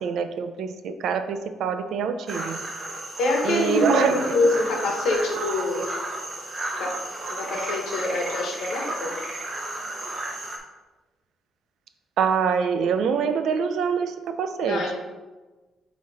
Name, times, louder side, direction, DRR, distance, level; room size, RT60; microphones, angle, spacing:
voice 1, 0.0-2.6 3.4-4.4 5.4-5.9 12.2-14.8, right 6 dB, 60° right, 9 dB, 0.5 m, -25 dB
sound 1, 2.3-10.6, right 1 dB, 20° right, 0.9 m, -33 dB
voice 2, 3.2-5.9 6.8-7.0 7.3-9.2 14.6-15.0, left 2 dB, 70° left, 0 dB, 1.3 m, -25 dB
8.4 x 3.1 x 4.2 m, 1.2 s
cardioid pair, 175°, 0 cm